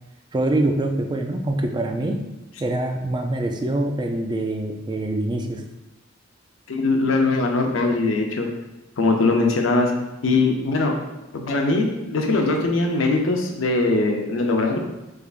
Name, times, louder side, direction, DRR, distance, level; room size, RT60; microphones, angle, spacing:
voice 1, 0.3-2.2 2.6-5.6, right 1 dB, 20° right, 3 dB, 0.3 m, -24 dB
voice 2, 6.7-8.5 9.0-9.9 10.2-10.9 11.3-14.8, left 3 dB, 90° left, 2 dB, 0.6 m, -21 dB
3.6 x 3.3 x 2.4 m, 1.0 s
head